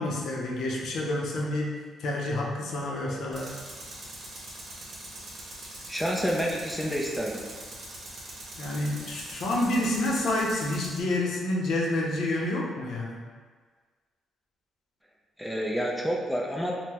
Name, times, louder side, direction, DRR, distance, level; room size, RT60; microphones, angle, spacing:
voice 1, 0.0-1.7 2.0-3.5 8.6-13.2, left 1 dB, 70° left, -1 dB, 0.6 m, -28 dB
Tools, 3.3-11.0, right 1 dB, 60° right, 0.9 m, -42 dB
voice 2, 5.9-7.4 15.4-16.7, equal, ahead, -2 dB, 0.4 m, -29 dB
3.6 x 2.1 x 2.9 m, 1.5 s
cardioid pair, 90°, 0 cm